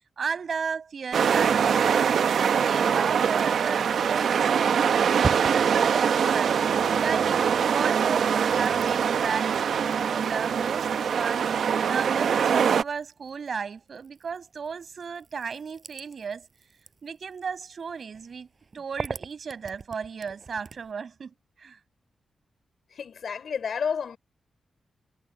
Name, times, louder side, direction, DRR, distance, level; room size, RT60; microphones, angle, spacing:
voice 1, 0.2-5.1 5.3-6.6 7.0-11.5 11.9-16.5 17.0-18.5 18.7-21.8, right 6 dB, 60° right, 7.1 m, -34 dB
sound 1, 1.1-12.8, right 7 dB, 80° right, 1.0 m, -23 dB
sound 2, 7.6-20.9, right 4 dB, 45° right, 7.4 m, -42 dB
voice 2, 22.9-24.2, left 6 dB, 70° left, 5.3 m, -30 dB
cardioid pair, 75°, 0 cm